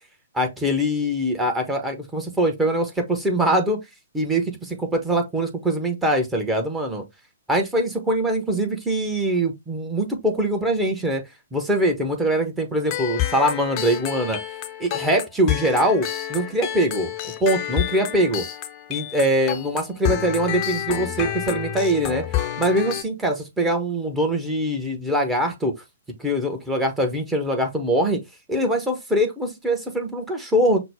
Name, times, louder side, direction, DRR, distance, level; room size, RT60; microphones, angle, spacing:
voice 1, 0.3-3.8 4.1-7.0 7.5-11.2 11.5-14.4 14.8-17.1 17.4-18.5 18.9-25.7 26.2-28.2 28.5-30.8, right 1 dB, 10° right, 0.9 m, -23 dB
sound 1, 12.9-23.0, left 12 dB, 30° left, 0.6 m, -29 dB
5.9 x 2.1 x 3.4 m
figure-of-eight pair, 120°, 0 cm